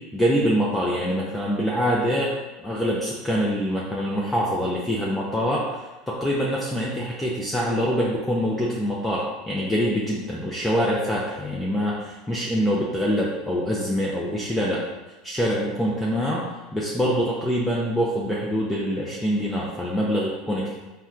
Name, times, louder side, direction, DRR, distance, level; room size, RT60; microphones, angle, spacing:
voice 1, 0.0-2.3 2.6-14.8 15.2-16.4 16.7-20.8, equal, 5° left, -5 dB, 0.4 m, -25 dB
4.2 x 2.2 x 2.4 m, 1.1 s
supercardioid pair, 135°, 0 cm